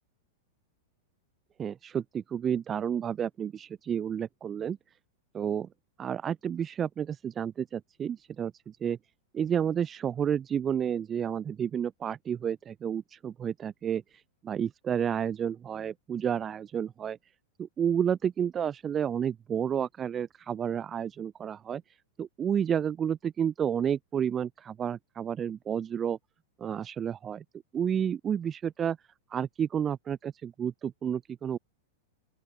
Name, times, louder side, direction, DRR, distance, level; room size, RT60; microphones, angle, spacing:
voice 1, 1.6-4.8 5.3-5.7 6.0-9.0 9.3-17.2 17.6-21.8 22.2-26.2 26.6-27.4 27.7-29.0 29.3-31.6, right 8 dB, 25° right, 0.5 m, -31 dB
open air
figure-of-eight pair, 95°, 0 cm